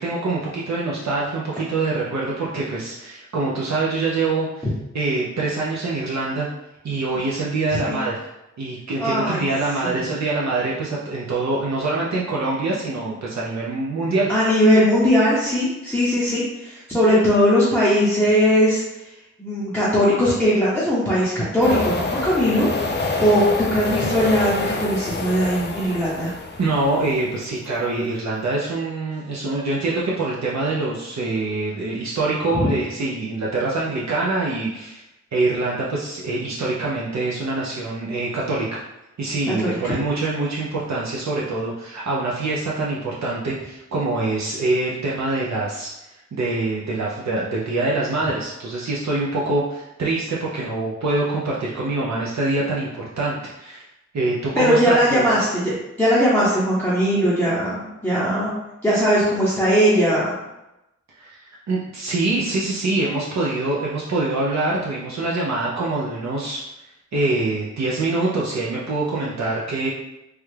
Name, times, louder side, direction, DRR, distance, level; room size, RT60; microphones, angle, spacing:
voice 1, 0.0-4.7 4.9-6.5 6.8-8.2 8.6-14.3 26.6-35.0 35.3-38.8 39.2-53.8 54.1-55.4 61.2-66.6 67.1-69.9, right 2 dB, 60° right, -5 dB, 0.5 m, -24 dB
voice 2, 7.7-8.0 9.0-9.4 9.8-10.2 14.3-19.1 19.4-22.7 23.2-26.3 32.5-32.7 39.5-40.0 54.5-58.5 58.8-60.3, equal, 5° left, -10 dB, 0.7 m, -19 dB
sound 1, 21.6-27.4, left 3 dB, 35° left, 0.4 m, -27 dB
3.2 x 2.3 x 3.2 m, 0.92 s
wide cardioid pair, 105°, 30 cm